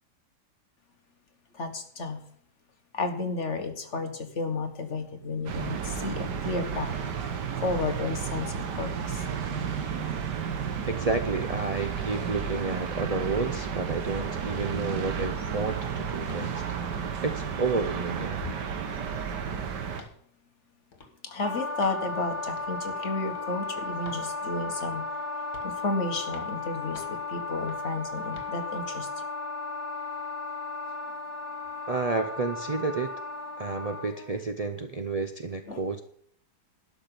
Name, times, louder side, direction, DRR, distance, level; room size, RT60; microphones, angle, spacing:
voice 1, 1.5-2.2 2.9-7.3 7.6-9.2 21.2-25.0 25.6-29.1 35.7-35.8, left 3 dB, 45° left, 6 dB, 1.7 m, -32 dB
sound 1, 5.5-20.0, right 7 dB, 80° right, 1.8 m, -32 dB
voice 2, 10.9-16.6 17.2-18.4 31.9-33.1 33.6-36.0, right 3 dB, 60° right, 7 dB, 0.3 m, -30 dB
sound 2, 16.3-16.5 16.9-17.2 17.6-18.1 18.4-18.5 18.8-19.5 19.9-20.2 20.9-21.1 21.8-22.0 22.6-22.8 23.3-23.5 24.0-24.3 24.8-25.1 25.5-25.8 26.3-26.5 26.9-27.2 27.7-27.9 28.3-28.5, left 4 dB, 70° left, 2.2 m, -50 dB
Wind instrument woodwind instrument, 21.4-34.3, left 3 dB, 10° left, 7.2 m, -35 dB
12.0 x 6.0 x 8.7 m, 0.63 s
omnidirectional pair, 1.8 m